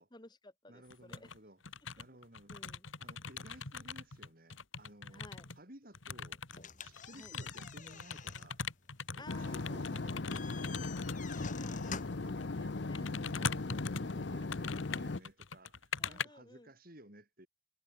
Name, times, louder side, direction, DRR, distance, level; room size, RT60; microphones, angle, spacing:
voice 1, 0.0-1.3 2.5-2.9 5.1-5.5 7.1-7.3 9.2-9.8 11.3-13.0 16.0-16.7, left 2 dB, 20° left, 2.0 m, -55 dB
voice 2, 0.7-1.6 2.0-2.5 3.0-5.2 5.6-6.4 6.8-8.7 9.1-10.8 11.7-17.5, right 1 dB, 45° right, 5.0 m, -56 dB
sound 1, 0.9-1.4 1.6-5.6 5.9-11.4 12.2-12.5 12.9-16.3, left 5 dB, 80° left, 2.5 m, -42 dB
sound 2, 6.5-12.3, left 6 dB, 40° left, 2.1 m, -49 dB
sound 3, 9.3-15.2, left 3 dB, 60° left, 0.7 m, -38 dB
head